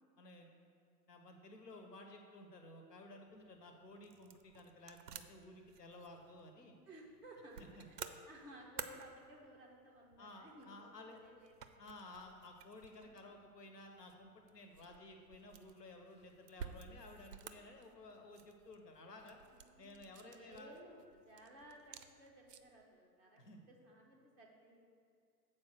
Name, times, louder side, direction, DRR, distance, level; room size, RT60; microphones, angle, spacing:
voice 1, 0.2-0.5 1.1-6.8 7.7-7.9 10.2-11.2 11.8-19.4 19.8-20.7 23.4-23.6, left 2 dB, 80° left, 4 dB, 1.2 m, -55 dB
sound 1, 3.3-22.8, right 8 dB, 75° right, 0.6 m, -55 dB
voice 2, 6.9-11.7 12.9-13.3 19.5-23.4 23.7-24.9, right 1 dB, ahead, -7 dB, 0.4 m, -58 dB
7.1 x 4.4 x 6.6 m, 2.4 s
figure-of-eight pair, 100°, 48 cm